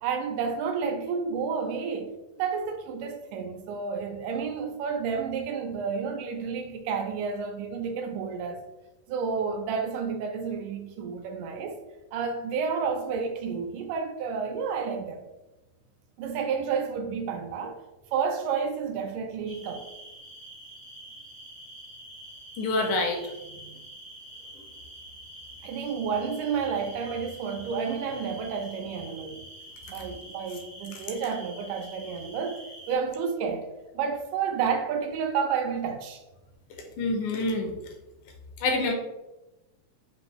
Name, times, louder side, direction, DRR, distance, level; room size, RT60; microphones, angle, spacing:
voice 1, 0.0-8.6 9.1-11.8 12.1-15.2 16.2-17.8 18.1-19.8 25.6-29.4 29.9-32.6 32.9-33.7 33.9-36.2, right 6 dB, 85° right, 2.1 m, -30 dB
sound 1, 19.4-33.0, right 1 dB, 50° left, 0.7 m, -46 dB
voice 2, 22.6-23.7 30.9-31.0 37.0-37.7 38.6-38.9, left 2 dB, 80° left, 2.0 m, -27 dB
5.3 x 2.6 x 3.0 m
omnidirectional pair, 3.6 m